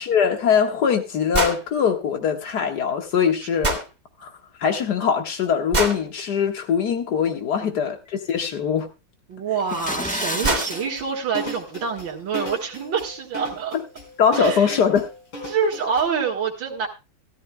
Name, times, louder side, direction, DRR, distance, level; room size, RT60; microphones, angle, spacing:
voice 1, 0.0-3.8 4.2-4.3 4.6-8.9 14.2-15.1, left 7 dB, 55° left, 2.0 m, -22 dB
sound 1, 1.3-1.6 3.6-3.9 5.7-6.0 8.3-8.4 9.7-9.8 10.1-10.2 10.4-10.7, right 2 dB, 20° right, 2.0 m, -23 dB
voice 2, 9.3-13.8 14.3-14.8 15.5-16.9, right 7 dB, 70° right, 2.5 m, -26 dB
sound 2, 9.6-10.8, equal, 15° left, 0.3 m, -29 dB
sound 3, 10.4-16.0, equal, 80° left, 5.8 m, -35 dB
17.5 x 13.0 x 2.2 m
omnidirectional pair, 2.1 m